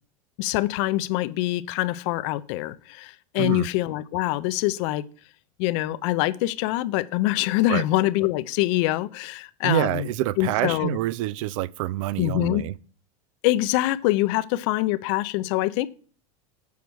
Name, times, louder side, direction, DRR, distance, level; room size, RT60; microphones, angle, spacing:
voice 1, 0.4-5.0 5.6-10.1 10.4-11.0 12.2-12.6 13.4-15.9, left 17 dB, 60° left, 0.6 m, -24 dB
voice 2, 3.4-3.7 7.7-7.8 9.6-12.8, right 16 dB, 65° right, 0.4 m, -26 dB
7.1 x 4.7 x 6.2 m
supercardioid pair, 125°, 18 cm